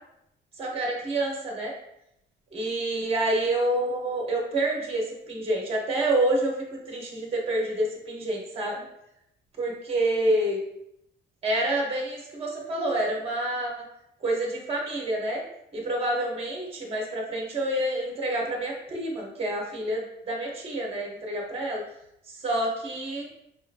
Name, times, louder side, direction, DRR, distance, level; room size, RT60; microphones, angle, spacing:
voice 1, 0.6-1.7 2.5-8.8 9.6-10.6 11.4-13.7 14.2-15.4 15.7-21.8 22.3-23.3, right 1 dB, 30° right, -1 dB, 1.0 m, -28 dB
5.2 x 2.7 x 2.5 m, 0.80 s
cardioid pair, 160°, 20 cm